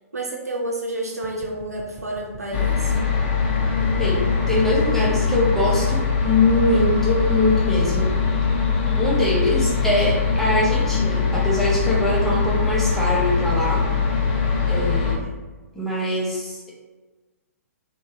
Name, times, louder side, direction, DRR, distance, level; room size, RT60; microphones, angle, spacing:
voice 1, 0.1-3.0 14.7-15.1, right 1 dB, 85° right, -1 dB, 0.5 m, -30 dB
sound 1, 1.2-9.8, right 4 dB, 25° right, 0.4 m, -40 dB
sound 2, 2.5-15.2, left 5 dB, 35° left, 0.5 m, -22 dB
voice 2, 4.0-8.1 9.0-13.8 14.7-15.3 15.7-16.7, left 1 dB, 5° left, -6 dB, 0.8 m, -23 dB
3.0 x 2.1 x 3.0 m, 1.3 s
figure-of-eight pair, 120°, 8 cm